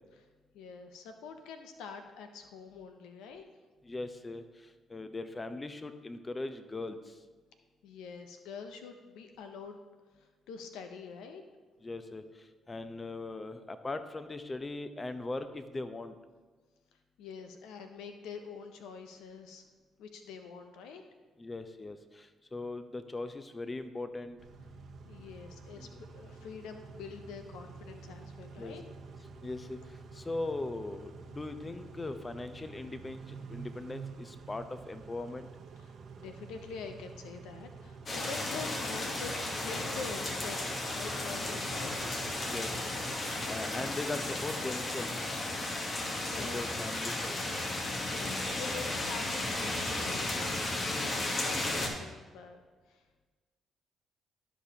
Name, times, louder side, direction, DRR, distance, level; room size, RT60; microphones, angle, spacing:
voice 1, 0.5-3.4 7.8-9.8 10.2-11.4 17.2-19.6 20.0-21.0 25.0-25.9 26.1-28.8 35.8-42.0 46.3-46.6 48.1-52.6 52.9-53.0, left 5 dB, 75° left, 6 dB, 0.6 m, -45 dB
voice 2, 3.8-4.4 4.9-7.1 11.8-12.2 12.7-16.2 21.4-24.4 25.8-25.9 28.6-28.7 29.4-29.8 30.1-35.5 42.5-42.8 43.1-45.4 46.4-47.4, left 2 dB, 30° left, 10 dB, 0.7 m, -39 dB
Car / Idling / Accelerating revving vroom, 24.4-43.5, right 4 dB, 60° right, 0.9 m, -49 dB
sound 1, 38.1-51.9, left 2 dB, 45° left, 1.4 m, -34 dB
12.5 x 5.1 x 2.9 m, 1.3 s
hypercardioid pair, 50°, 0 cm